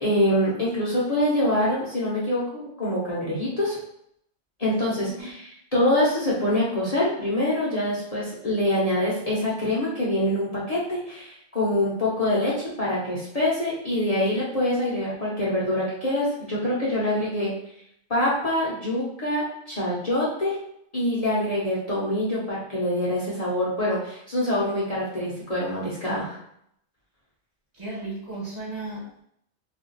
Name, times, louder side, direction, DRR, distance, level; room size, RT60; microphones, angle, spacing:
voice 1, 0.0-3.7 4.6-17.5 18.1-20.6 20.9-26.4, left 1 dB, 40° left, -7 dB, 0.8 m, -25 dB
voice 2, 27.7-29.2, right 2 dB, 40° right, -7 dB, 1.2 m, -35 dB
2.5 x 2.3 x 3.8 m, 0.72 s
omnidirectional pair, 1.1 m